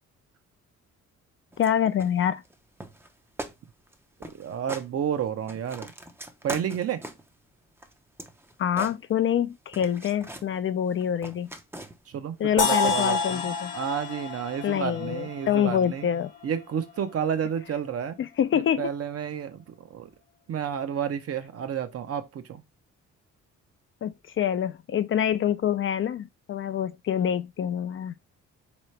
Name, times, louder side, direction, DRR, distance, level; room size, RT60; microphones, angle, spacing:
sound 1, 1.5-1.7 2.0-2.5 2.8-3.1 3.4-3.6 3.9-4.0 4.2-4.9 5.3-7.3 7.8-9.4 9.7-10.5 10.9-12.1 12.9-13.2, right 1 dB, 10° right, 0.5 m, -41 dB
voice 1, 1.6-2.4 8.6-11.5 12.4-13.7 14.6-16.3 18.2-18.9 24.0-28.1, left 9 dB, 45° left, 0.4 m, -26 dB
voice 2, 4.4-5.9 6.4-7.0 12.1-16.1 16.4-18.2 18.8-20.1 20.5-22.6, right 8 dB, 50° right, 0.7 m, -31 dB
sound 2, 12.6-16.5, left 4 dB, 85° left, 0.8 m, -29 dB
3.7 x 3.1 x 3.1 m
cardioid pair, 90°, 30 cm